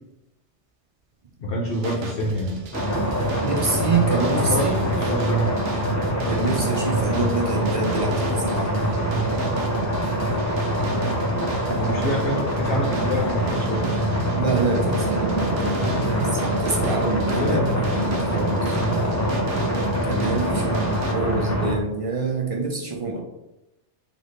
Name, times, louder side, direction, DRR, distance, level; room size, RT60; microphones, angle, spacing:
voice 1, 1.4-2.5 4.1-5.7 11.7-13.9 17.4-17.8, equal, 60° left, -3 dB, 0.9 m, -26 dB
sound 1, 1.7-21.1, right 2 dB, 90° right, 1.0 m, -35 dB
sound 2, 2.7-21.7, right 1 dB, 20° left, 0.6 m, -24 dB
voice 2, 3.4-4.8 6.3-8.8 14.3-17.6 17.9-18.8 20.0-23.2, right 4 dB, 45° right, 0 dB, 0.5 m, -26 dB
4.0 x 3.4 x 3.2 m, 0.92 s
omnidirectional pair, 1.2 m